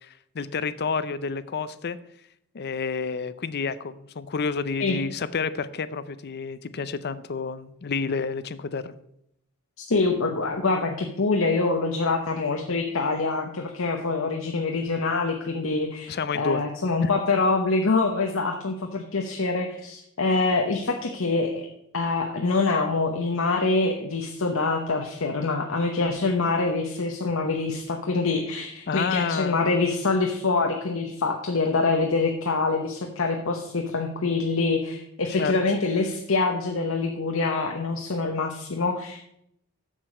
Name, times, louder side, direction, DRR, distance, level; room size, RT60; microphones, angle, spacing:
voice 1, 0.0-2.0 2.5-8.9 16.1-16.6 17.0-17.1 28.9-29.6 35.4-35.5, left 5 dB, 50° left, 15 dB, 0.5 m, -29 dB
voice 2, 9.9-21.7 21.9-39.3, left 3 dB, 70° left, 3 dB, 1.0 m, -25 dB
7.3 x 6.9 x 6.5 m, 0.75 s
head